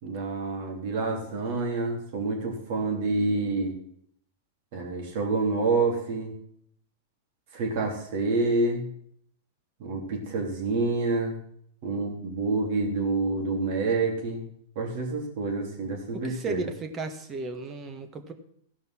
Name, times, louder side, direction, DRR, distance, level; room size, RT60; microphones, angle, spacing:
voice 1, 0.0-3.7 4.7-6.3 7.5-8.9 9.8-11.4 11.8-14.4 14.8-16.6, right 3 dB, 60° right, 1 dB, 3.6 m, -28 dB
voice 2, 16.1-18.3, right 3 dB, 25° right, 7 dB, 1.5 m, -35 dB
15.5 x 5.4 x 5.9 m, 0.67 s
hypercardioid pair, 125°, 0 cm